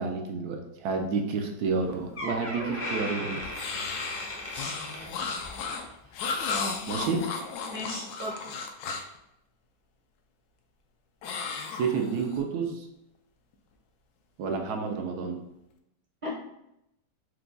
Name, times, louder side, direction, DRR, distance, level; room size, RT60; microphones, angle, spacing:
voice 1, 0.0-3.5 6.9-7.3 11.7-12.9 14.4-15.4, right 5 dB, 75° right, 3 dB, 1.0 m, -30 dB
Door, 1.7-1.8 2.1-5.6 6.0-6.3 7.0-7.1, left 1 dB, 30° left, 0.6 m, -36 dB
sound 1, 3.5-9.2 11.2-12.4, left 5 dB, 70° left, 1.0 m, -34 dB
voice 2, 7.7-8.5 16.2-16.3, left 1 dB, 30° right, -4 dB, 0.6 m, -36 dB
4.6 x 2.2 x 3.8 m, 0.82 s
omnidirectional pair, 1.9 m